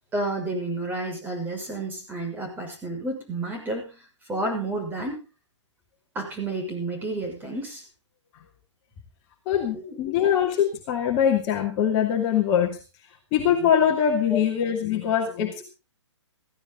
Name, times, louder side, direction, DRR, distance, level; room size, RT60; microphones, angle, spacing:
voice 1, 0.1-5.2 6.1-7.8 9.7-10.0 14.3-14.4, right 2 dB, 10° right, 2 dB, 6.2 m, -31 dB
voice 2, 9.5-12.8 13.3-15.6, left 9 dB, 30° left, 1 dB, 2.5 m, -23 dB
16.0 x 15.5 x 4.0 m, 0.33 s
figure-of-eight pair, 125°, 16 cm